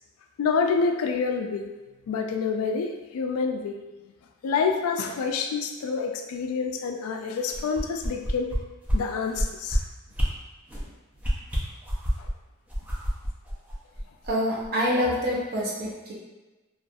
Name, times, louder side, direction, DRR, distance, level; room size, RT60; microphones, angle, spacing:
voice 1, 0.4-1.7 2.1-3.8 4.4-8.5 8.9-9.8 12.2-12.3, left 5 dB, 85° left, 4 dB, 0.3 m, -27 dB
Combat Whooshes, 7.5-8.6 8.9-9.0 9.3-9.8 10.1-10.3 10.7-10.9 11.2-12.3 12.7-14.3 14.6-14.7, equal, 5° right, 0.4 m, -27 dB
voice 2, 14.2-16.1, equal, 45° right, -5 dB, 0.6 m, -26 dB
2.6 x 2.3 x 2.3 m, 1.1 s
head